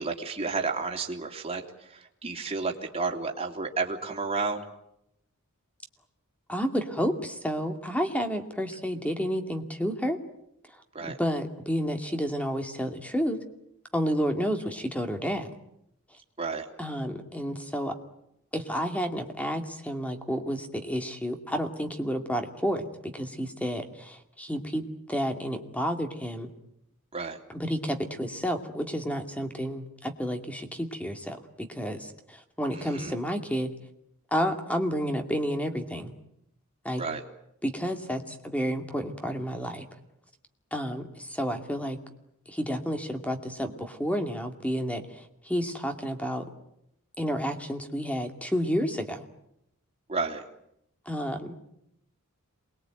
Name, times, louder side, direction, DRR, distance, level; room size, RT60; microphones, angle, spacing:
voice 1, 0.0-4.6 10.9-11.2 16.4-16.6 27.1-27.4 32.7-33.1 37.0-37.2 50.1-50.4, right 4 dB, 25° right, 1 dB, 3.0 m, -31 dB
voice 2, 6.5-10.2 11.2-13.4 13.9-15.5 16.8-17.9 18.5-24.8 25.1-26.5 27.5-33.7 34.3-36.1 36.8-37.0 37.6-39.8 40.7-42.0 42.5-46.5 47.2-49.2 51.1-51.6, equal, 5° left, 5 dB, 2.4 m, -30 dB
27.5 x 21.5 x 9.2 m, 0.78 s
head